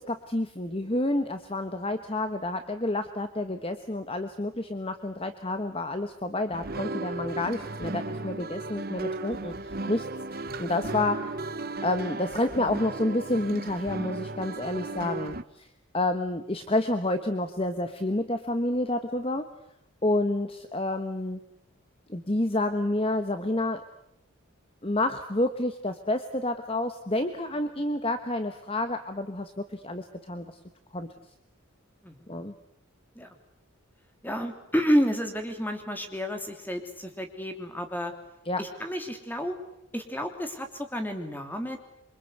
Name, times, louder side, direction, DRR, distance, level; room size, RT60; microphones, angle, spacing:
voice 1, 0.0-11.3 11.8-15.7 15.9-19.5 20.0-21.4 22.1-23.8 24.8-30.6 30.9-31.1 32.3-32.5 38.4-38.6, left 1 dB, 25° left, 8 dB, 1.2 m, -29 dB
sound 1, 6.5-15.4, right 2 dB, 45° right, 1.0 m, -35 dB
voice 2, 34.2-38.1 38.6-39.6 39.9-41.8, equal, 10° left, 5 dB, 3.0 m, -30 dB
27.5 x 24.5 x 8.1 m, 0.77 s
head